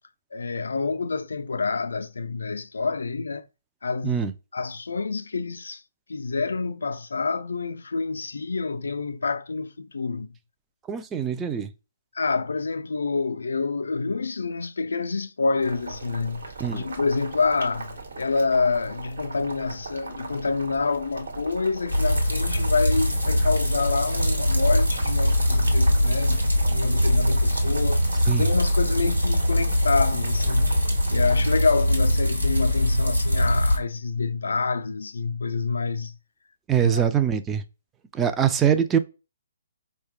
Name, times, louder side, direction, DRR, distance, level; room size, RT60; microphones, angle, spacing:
voice 1, 0.3-3.5 3.8-4.3 4.5-5.8 6.1-10.3 12.1-28.1 28.4-30.8 31.1-36.2 36.8-37.0, left 4 dB, 65° left, 0.3 m, -27 dB
voice 2, 10.9-11.7 16.6-16.8 28.3-28.5 36.7-37.6 38.1-39.0, right 8 dB, 15° right, 0.3 m, -23 dB
Boiling, 15.6-31.7, right 3 dB, 65° right, 1.0 m, -39 dB
sound 1, 21.9-33.8, left 1 dB, 90° right, 1.2 m, -22 dB
4.6 x 2.2 x 3.1 m
figure-of-eight pair, 130°, 0 cm